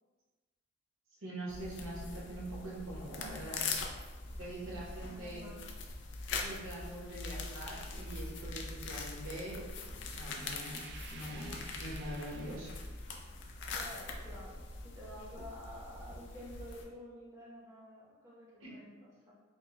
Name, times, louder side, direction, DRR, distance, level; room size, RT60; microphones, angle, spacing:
voice 1, 1.2-3.6 4.4-5.4 6.4-9.6 10.1-10.8 11.1-12.7 18.6-18.8, right 1 dB, 85° right, -4 dB, 1.0 m, -43 dB
sound 1, 1.5-16.8, left 3 dB, 60° left, 0.4 m, -42 dB
voice 2, 5.1-5.6 11.7-12.1 13.2-19.3, equal, 15° right, -6 dB, 0.7 m, -51 dB
sound 2, 10.3-13.1, right 5 dB, 55° right, 0.3 m, -53 dB
4.5 x 2.1 x 3.1 m, 1.3 s
head